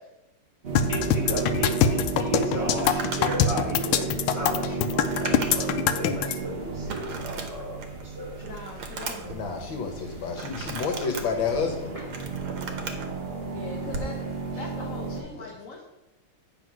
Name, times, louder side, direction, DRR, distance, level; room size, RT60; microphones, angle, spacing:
sound 1, 0.6-15.2, right 3 dB, 35° right, 1.1 m, -33 dB
sound 2, 0.8-6.4, left 8 dB, 90° left, 1.5 m, -23 dB
voice 1, 0.9-8.5 11.9-12.0 14.5-14.6, right 1 dB, 15° right, -6 dB, 3.3 m, -34 dB
Crumpling crinkling, 2.7-5.9 6.2-6.3 6.9-8.0 8.4-9.4 10.3-11.2 11.9-13.1 13.9-14.1, right 4 dB, 75° right, 1.9 m, -37 dB
voice 2, 8.4-9.5 13.4-15.8, left 3 dB, 50° left, 1 dB, 1.2 m, -41 dB
voice 3, 9.3-11.9 15.3-15.5, left 5 dB, 70° left, 3 dB, 1.8 m, -30 dB
9.4 x 4.3 x 6.1 m, 0.97 s
omnidirectional pair, 2.3 m